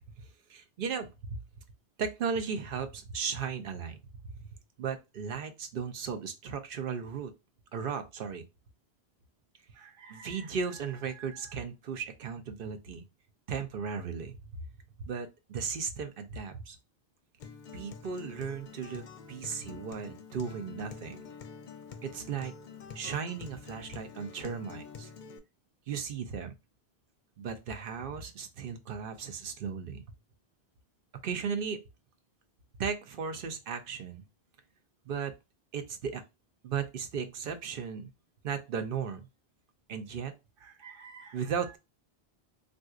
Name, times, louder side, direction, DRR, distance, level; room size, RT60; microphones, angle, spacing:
voice 1, 0.2-1.4 2.0-4.0 4.2-4.5 4.8-7.3 7.7-8.4 9.7-13.0 13.5-14.5 15.0-16.8 17.7-21.2 22.0-22.5 22.9-25.1 25.9-26.6 27.4-30.0 31.2-31.8 32.8-34.2 35.1-35.3 35.7-36.2 36.6-38.1 38.4-39.3 39.9-41.8, right 6 dB, 60° right, 0.8 m, -36 dB
Acoustic guitar, 17.4-25.4, left 6 dB, 55° left, 0.6 m, -47 dB
3.7 x 2.6 x 2.3 m
omnidirectional pair, 1.1 m